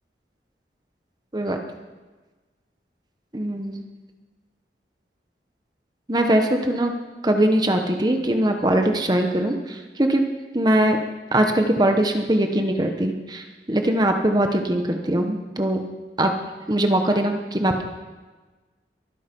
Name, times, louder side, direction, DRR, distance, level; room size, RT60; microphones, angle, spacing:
voice 1, 3.3-3.8 6.1-6.9 7.2-10.2 10.5-11.0 11.3-15.8 16.2-16.3 16.7-17.8, right 1 dB, 25° right, 4 dB, 1.2 m, -21 dB
23.0 x 10.0 x 5.4 m, 1.3 s
head